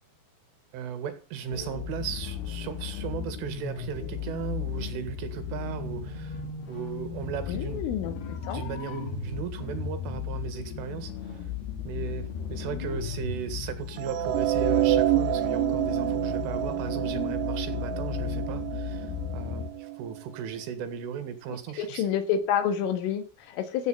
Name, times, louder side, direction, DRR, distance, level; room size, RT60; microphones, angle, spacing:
voice 1, 0.7-6.4 6.7-7.9 8.5-11.4 11.9-22.1, right 8 dB, 75° right, 4.4 m, -36 dB
sound 1, 1.5-19.7, left 8 dB, 55° left, 4.1 m, -35 dB
voice 2, 7.5-8.1 8.5-8.6 21.8-23.9, left 8 dB, 75° left, 4.2 m, -28 dB
sound 2, 14.0-20.2, right 15 dB, 90° right, 3.7 m, -28 dB
15.0 x 9.4 x 7.3 m
omnidirectional pair, 6.0 m